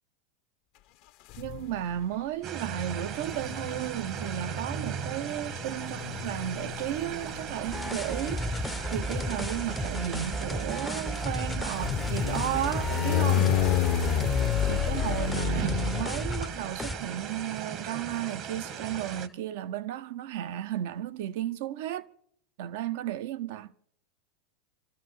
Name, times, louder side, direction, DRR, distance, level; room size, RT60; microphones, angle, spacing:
sound 1, 1.3-2.0 3.1-16.8, left 11 dB, 55° left, 0.8 m, -31 dB
voice 1, 1.4-13.7 14.7-22.1 22.6-23.7, right 11 dB, 65° right, 0.7 m, -34 dB
sound 2, 2.4-19.3, right 7 dB, 45° right, 1.2 m, -38 dB
sound 3, 7.7-16.5 16.8-17.0, left 1 dB, 5° left, 0.6 m, -33 dB
29.0 x 13.0 x 3.2 m
hypercardioid pair, 95°, 0 cm